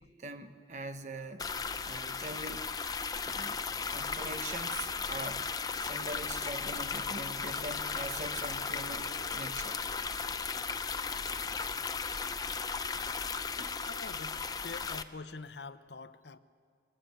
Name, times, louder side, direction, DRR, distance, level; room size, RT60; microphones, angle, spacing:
voice 1, 0.2-1.5 1.8-2.7 3.2-3.6 3.9-5.5 5.8-9.8 13.6-13.8, right 2 dB, 40° right, 9 dB, 1.0 m, -43 dB
sound 1, 1.4-15.0, left 5 dB, 20° left, 0.5 m, -36 dB
Wind instrument woodwind instrument, 6.6-11.1, right 9 dB, 20° right, 5.7 m, -56 dB
voice 2, 13.8-16.4, left 4 dB, 75° left, 13 dB, 0.7 m, -45 dB
21.5 x 20.0 x 8.1 m, 2.2 s
head